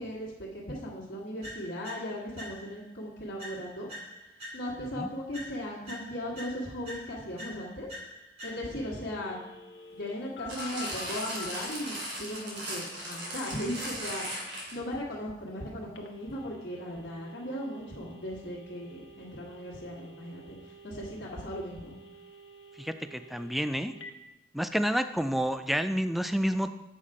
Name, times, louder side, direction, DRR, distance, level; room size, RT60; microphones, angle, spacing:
voice 1, 0.0-3.9 4.5-7.9 8.4-9.4 9.9-21.9, equal, 55° left, -7 dB, 1.7 m, -37 dB
sound 1, 1.4-2.9 3.4-4.9 5.3-8.9, equal, 35° right, 2.5 m, -45 dB
Telephone, 8.4-11.5 15.9-24.1, left 2 dB, 90° left, 1.1 m, -49 dB
sound 2, 10.5-14.9 15.7-15.8, equal, 90° right, 2.7 m, -37 dB
voice 2, 22.8-23.9 24.5-26.7, equal, ahead, 10 dB, 0.3 m, -29 dB
8.3 x 5.7 x 4.8 m, 1.0 s
head